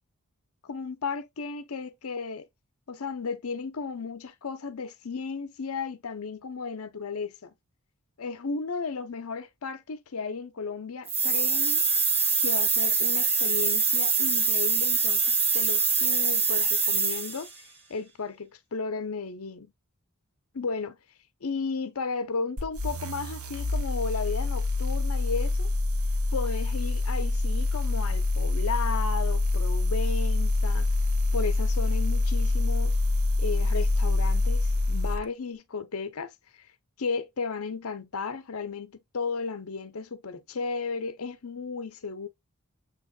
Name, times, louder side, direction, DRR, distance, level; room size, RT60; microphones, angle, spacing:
voice 1, 0.6-2.5 2.9-7.5 8.2-11.8 12.4-17.5 17.9-19.7 20.5-21.0 21.4-25.7 26.3-30.9 31.3-33.0 33.4-36.7 37.0-42.3, left 4 dB, 75° left, 0.7 m, -34 dB
sound 1, 11.1-17.5, right 5 dB, 25° right, 1.3 m, -24 dB
sound 2, 22.6-35.2, left 2 dB, 75° right, 0.9 m, -26 dB
7.3 x 3.0 x 2.3 m
head